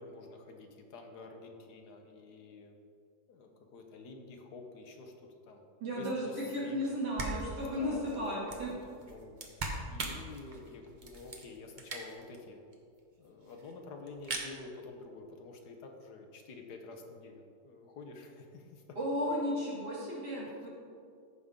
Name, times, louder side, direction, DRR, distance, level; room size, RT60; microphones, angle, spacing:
voice 1, 0.0-2.8 3.3-5.6 5.9-6.8 7.7-8.5 8.8-12.6 13.2-19.0, left 3 dB, 75° left, 3 dB, 1.5 m, -49 dB
voice 2, 5.8-8.7 19.0-20.7, equal, 85° right, -6 dB, 3.2 m, -34 dB
sound 1, 6.8-6.9 7.2-12.4 12.7-12.8 13.0-13.1 13.2-13.7 14.1-14.5, right 2 dB, 35° right, 0.9 m, -41 dB
14.5 x 5.5 x 3.7 m, 2.4 s
omnidirectional pair, 1.8 m